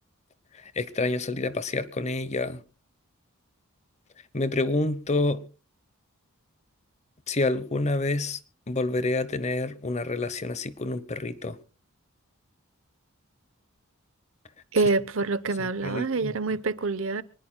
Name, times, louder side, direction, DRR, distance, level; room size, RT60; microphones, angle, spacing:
voice 1, 0.7-2.6 4.3-5.4 7.3-8.4 8.7-11.6 15.6-16.3, left 2 dB, 30° left, 0.8 m, -28 dB
voice 2, 14.7-17.2, right 3 dB, 60° right, 0.8 m, -26 dB
25.0 x 19.5 x 2.2 m
head